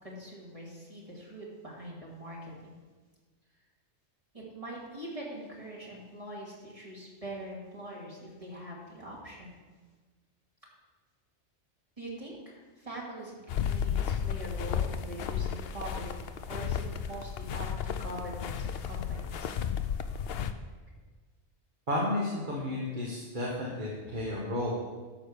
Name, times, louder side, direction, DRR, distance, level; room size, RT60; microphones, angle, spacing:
voice 1, 0.0-2.7 4.3-9.6 12.0-19.5, right 1 dB, 30° right, -4 dB, 2.4 m, -43 dB
sound 1, 13.5-20.5, left 8 dB, 65° left, 0.8 m, -33 dB
voice 2, 21.9-24.7, left 1 dB, 45° right, -5 dB, 1.7 m, -32 dB
11.5 x 5.0 x 6.8 m, 1.3 s
omnidirectional pair, 1.2 m